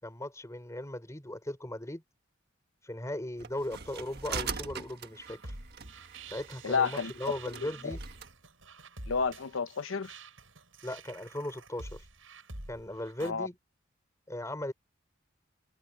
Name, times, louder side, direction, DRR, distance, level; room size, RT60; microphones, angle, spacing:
voice 1, 0.0-2.0 2.8-5.6 6.3-8.0 10.8-12.1 12.7-13.5 14.3-14.7, left 1 dB, 15° left, 3.9 m, -38 dB
sound 1, 3.4-8.3, right 6 dB, 55° right, 1.5 m, -42 dB
sound 2, 5.3-13.3, right 2 dB, 85° right, 7.4 m, -47 dB
voice 2, 6.6-7.1 7.5-8.0 9.1-10.1 13.2-13.5, left 5 dB, 85° left, 0.8 m, -31 dB
open air
head